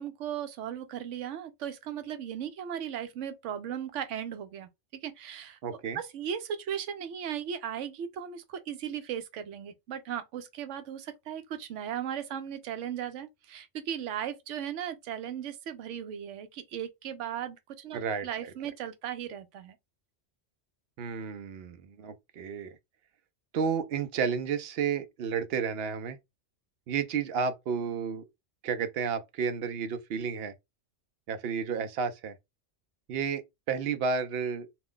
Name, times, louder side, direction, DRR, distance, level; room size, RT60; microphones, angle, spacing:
voice 1, 0.0-4.7 5.0-19.8, right 9 dB, 90° right, 0.9 m, -37 dB
voice 2, 5.6-6.0 17.9-18.3 21.0-22.8 23.5-26.2 26.9-28.2 28.6-30.5 31.3-32.3 33.1-33.4 33.7-34.7, right 6 dB, 65° right, 0.7 m, -31 dB
2.5 x 2.2 x 3.5 m
omnidirectional pair, 1.2 m